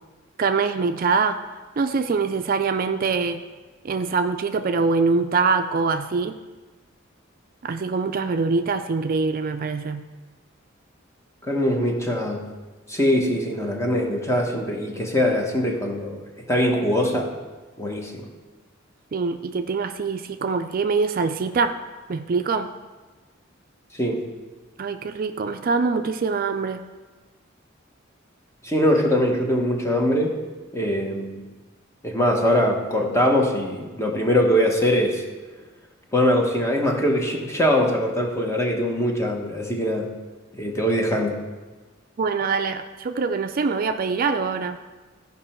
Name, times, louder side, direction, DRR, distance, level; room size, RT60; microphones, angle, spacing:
voice 1, 0.4-1.4 1.8-3.4 3.8-6.4 7.6-10.0 19.1-21.8 22.1-22.7 24.8-26.8 42.2-44.8, right 4 dB, 45° right, 8 dB, 0.4 m, -24 dB
voice 2, 11.4-12.5 12.9-17.3 17.8-18.3 23.9-24.3 28.6-30.4 30.7-31.4 32.0-35.2 36.1-40.1 40.5-41.4, equal, 15° left, 1 dB, 1.1 m, -22 dB
15.0 x 5.4 x 4.4 m, 1.3 s
head